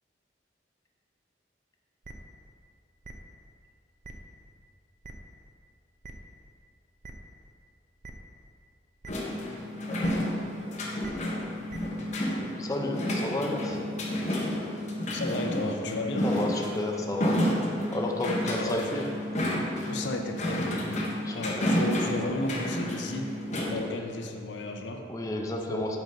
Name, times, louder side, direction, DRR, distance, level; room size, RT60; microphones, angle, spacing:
sound 1, 2.0-2.1 3.0-3.1 4.0-4.1 5.0-5.1 6.0-6.1 7.0-7.1 8.0-8.1 9.0-9.1 10.0-10.1 11.0-11.1 11.7-11.8, right 3 dB, 45° right, 0.5 m, -43 dB
sound 2, 9.1-23.8, equal, 40° left, 1.0 m, -30 dB
voice 1, 12.6-13.8 16.2-17.4 17.9-19.0 21.2-21.7 25.1-26.0, left 1 dB, 20° left, 0 dB, 0.6 m, -31 dB
voice 2, 15.1-16.4 18.6-19.0 19.9-21.0 21.3-25.1 25.7-26.0, left 2 dB, 80° left, 4 dB, 0.6 m, -34 dB
7.8 x 3.9 x 5.2 m, 2.4 s
head